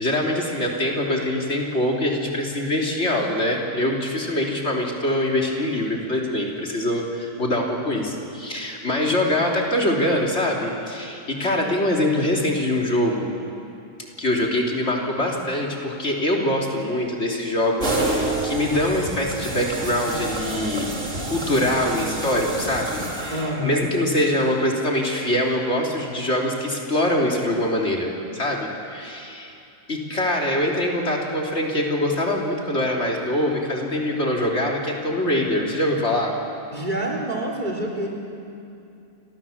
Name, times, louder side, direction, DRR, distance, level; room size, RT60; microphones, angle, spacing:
voice 1, 0.0-13.3 14.2-20.9 21.2-29.5 29.9-36.3, left 1 dB, 50° left, -1 dB, 3.6 m, -24 dB
sound 1, 17.8-23.8, right 2 dB, 55° right, 3.7 m, -29 dB
voice 2, 23.3-23.9 36.7-38.1, right 1 dB, 30° right, 0 dB, 3.9 m, -27 dB
30.0 x 26.0 x 7.3 m, 2.6 s
omnidirectional pair, 1.5 m